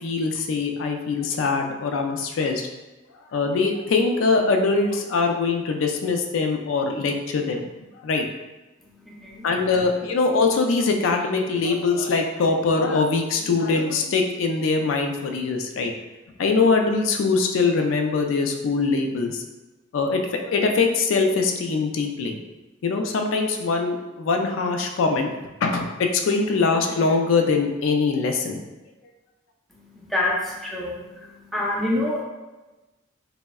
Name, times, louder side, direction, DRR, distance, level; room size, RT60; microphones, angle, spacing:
voice 1, 0.0-2.7 3.3-7.7 8.0-8.2 9.4-15.9 16.4-19.4 19.9-22.4 22.8-25.3 25.6-28.6, left 4 dB, 90° left, 3 dB, 0.3 m, -22 dB
voice 2, 9.0-9.4 30.1-32.2, left 1 dB, ahead, -4 dB, 0.4 m, -26 dB
3.4 x 2.1 x 2.2 m, 1.1 s
head